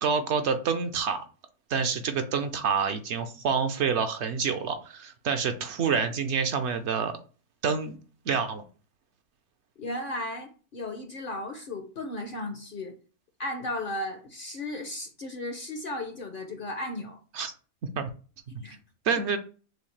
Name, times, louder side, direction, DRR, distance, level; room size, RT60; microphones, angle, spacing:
voice 1, 0.0-1.2 1.7-7.1 7.6-8.0 8.3-8.6 17.3-17.5 17.9-18.1 18.5-18.6 19.1-19.4, right 6 dB, 65° right, 7 dB, 0.8 m, -27 dB
voice 2, 9.8-12.9 13.4-17.2 18.6-18.8, left 1 dB, 55° left, 5 dB, 0.6 m, -35 dB
6.3 x 2.3 x 3.2 m, 0.37 s
omnidirectional pair, 1.4 m